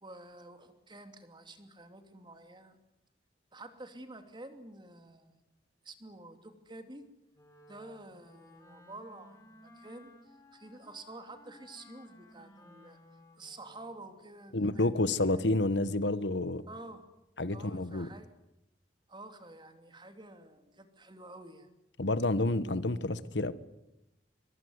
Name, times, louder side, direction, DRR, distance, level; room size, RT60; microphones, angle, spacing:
voice 1, 0.0-2.8 3.5-5.4 5.8-7.1 7.7-13.0 13.4-15.0 15.3-15.5 16.7-17.0 17.5-18.3 19.1-21.7, right 2 dB, 25° right, 2.8 m, -49 dB
Wind instrument woodwind instrument, 7.3-14.0, left 1 dB, 20° left, 4.5 m, -57 dB
voice 2, 14.5-16.6 17.4-18.1 22.0-23.5, left 2 dB, 80° left, 1.4 m, -29 dB
23.0 x 22.5 x 9.6 m
head